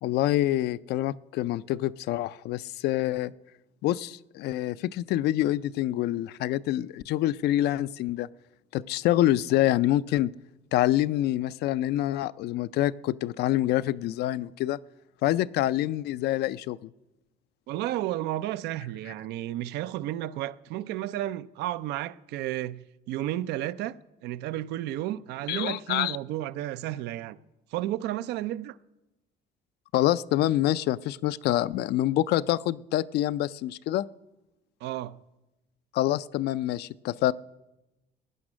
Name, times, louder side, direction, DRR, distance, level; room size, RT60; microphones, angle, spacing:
voice 1, 0.0-3.3 3.8-8.3 8.7-10.3 10.7-14.8 15.2-16.9 25.5-26.2 29.9-34.1 35.9-37.3, left 14 dB, 75° left, 0.4 m, -26 dB
voice 2, 17.7-24.0 24.2-27.4 27.7-28.8 34.8-35.2, right 14 dB, 85° right, 0.5 m, -32 dB
16.5 x 9.7 x 6.2 m
cardioid pair, 110°, 17 cm